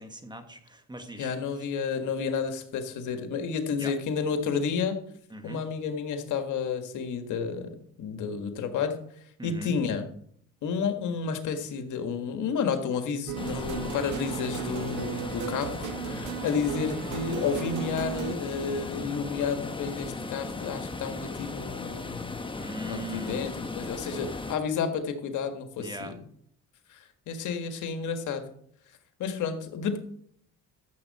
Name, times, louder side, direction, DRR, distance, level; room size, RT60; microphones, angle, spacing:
voice 1, 0.0-1.3 3.8-3.9 5.3-5.6 9.4-9.8 22.5-23.5 25.8-26.2, right 1 dB, 15° right, 7 dB, 1.5 m, -40 dB
voice 2, 1.2-5.0 5.4-9.0 9.4-10.1 10.6-22.3 22.8-26.1 26.9-28.4 29.2-30.0, left 6 dB, 80° left, 6 dB, 1.6 m, -31 dB
sound 1, 13.3-18.3, right 15 dB, 85° right, 0.6 m, -36 dB
sound 2, 13.4-24.6, left 3 dB, 15° left, 1.1 m, -37 dB
13.5 x 7.4 x 4.2 m, 0.65 s
cardioid pair, 90°, 30 cm